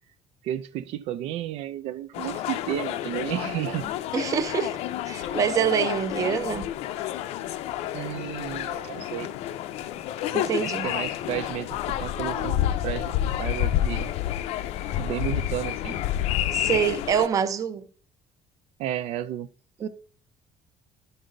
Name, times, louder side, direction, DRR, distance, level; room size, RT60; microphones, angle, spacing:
voice 1, 0.4-3.9 5.3-5.4 7.9-9.3 10.6-14.1 15.0-16.0 18.8-19.5, right 12 dB, 80° right, 0.4 m, -32 dB
sound 1, 2.1-17.3, left 12 dB, 90° left, 0.5 m, -29 dB
voice 2, 4.1-4.8 5.1-6.7 10.3-10.9 16.5-17.9 19.8-19.9, right 8 dB, 30° right, 0.6 m, -25 dB
11.5 x 5.4 x 3.9 m
cardioid pair, 175°, 10 cm